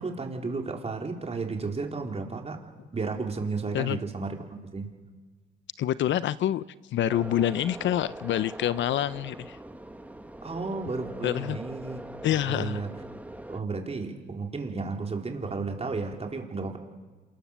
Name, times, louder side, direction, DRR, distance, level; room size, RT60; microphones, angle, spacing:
voice 1, 0.0-2.6 2.9-4.9 10.4-12.0 12.3-12.9 13.5-16.8, right 4 dB, 30° right, 4.0 m, -33 dB
voice 2, 5.8-6.6 6.9-9.6 11.2-11.6 12.2-12.8, left 11 dB, 70° left, 0.7 m, -27 dB
sound 1, 7.1-13.6, right 1 dB, 5° right, 1.6 m, -42 dB
27.5 x 20.0 x 7.3 m
cardioid pair, 90°, 20 cm